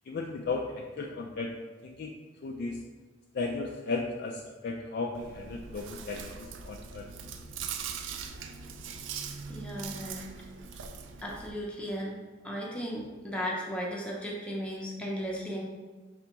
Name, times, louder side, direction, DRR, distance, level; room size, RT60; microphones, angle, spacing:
voice 1, 0.1-1.5 1.8-2.2 2.4-2.8 3.3-7.0, left 3 dB, 55° left, 0 dB, 0.3 m, -35 dB
Chewing mastication, 5.1-11.5, right 6 dB, 85° right, 0.4 m, -41 dB
voice 2, 9.5-10.3 11.2-12.2 12.4-15.6, equal, 5° left, -3 dB, 0.5 m, -35 dB
4.8 x 3.4 x 2.9 m, 1.3 s
head